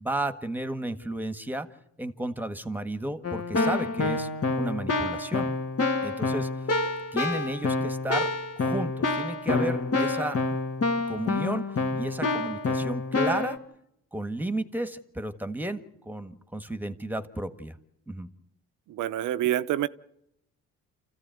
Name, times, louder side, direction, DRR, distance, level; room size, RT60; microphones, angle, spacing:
voice 1, 0.0-1.7 2.0-4.3 4.6-5.5 6.0-6.5 7.1-8.3 8.6-10.4 11.1-11.6 11.9-13.6 14.1-17.7 18.1-18.3, right 1 dB, 5° right, 10 dB, 1.6 m, -33 dB
Keyboard (musical), 3.2-13.6, left 3 dB, 50° left, 2.5 m, -27 dB
voice 2, 18.9-19.9, right 13 dB, 80° right, 14 dB, 0.9 m, -27 dB
28.0 x 15.0 x 9.2 m, 0.82 s
cardioid pair, 90°, 30 cm